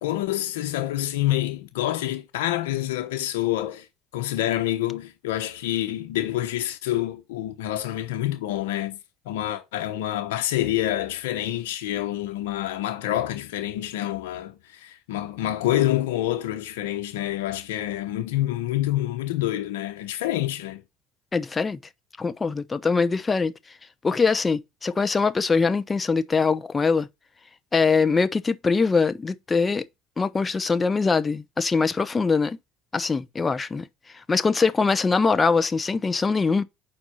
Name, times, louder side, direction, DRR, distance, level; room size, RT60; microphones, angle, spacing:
voice 1, 0.0-3.9 4.1-9.0 9.3-20.8, left 14 dB, 90° left, 0.9 m, -27 dB
voice 2, 21.3-21.8 22.2-23.5 24.0-27.1 27.7-29.8 30.2-32.6 32.9-33.9 34.3-36.6, left 4 dB, 20° left, 0.7 m, -22 dB
5.3 x 4.4 x 6.2 m
supercardioid pair, 95°, 0 cm